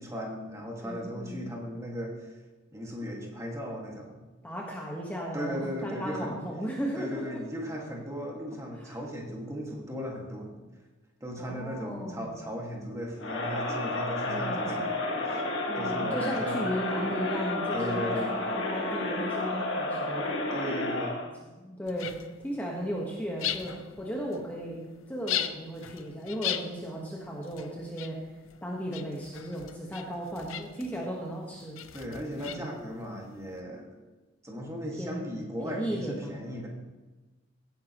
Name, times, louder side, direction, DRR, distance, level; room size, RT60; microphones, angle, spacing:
voice 1, 0.0-2.4 2.7-4.2 5.3-6.4 6.9-10.5 11.2-14.8 15.2-15.4 15.8-16.6 17.7-18.4 20.5-21.1 31.9-34.0 34.4-36.7, equal, 15° right, -1 dB, 1.9 m, -37 dB
voice 2, 0.8-1.5 4.4-7.4 8.8-9.0 11.4-12.3 14.3-14.7 15.7-20.5 21.2-21.3 21.6-22.1 22.4-28.2 28.6-31.8 32.5-32.7 35.0-35.3 35.6-36.3, equal, 10° left, -2 dB, 1.3 m, -36 dB
Crowd, 13.2-21.3, left 2 dB, 65° left, 1.7 m, -31 dB
sound 1, 21.9-33.6, left 11 dB, 85° left, 0.6 m, -39 dB
16.5 x 9.6 x 3.0 m, 1.2 s
head